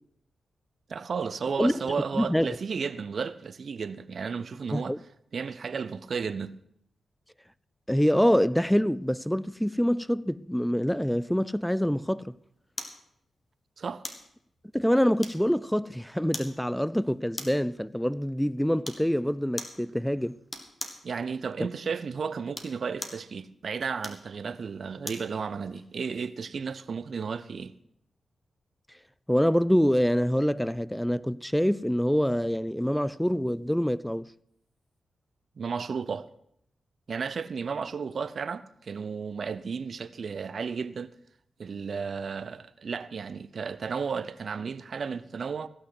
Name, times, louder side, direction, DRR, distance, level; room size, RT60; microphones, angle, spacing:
voice 1, 0.9-5.0 5.3-6.6 13.8-14.0 21.0-27.7 35.6-36.3 37.1-41.1 41.6-45.7, right 5 dB, 65° right, 0.7 m, -33 dB
voice 2, 2.1-2.5 4.7-5.0 7.9-12.4 14.7-20.4 29.3-34.3, equal, 5° left, 0.4 m, -25 dB
sound 1, 12.8-13.0 14.0-14.3 15.2-15.6 16.3-16.6 17.3-17.7 18.8-19.1 19.6-19.8 20.5-21.0 22.4-23.3 24.0-25.3 25.8-25.9, left 2 dB, 30° left, 2.1 m, -39 dB
16.0 x 6.4 x 7.7 m
supercardioid pair, 45°, 0 cm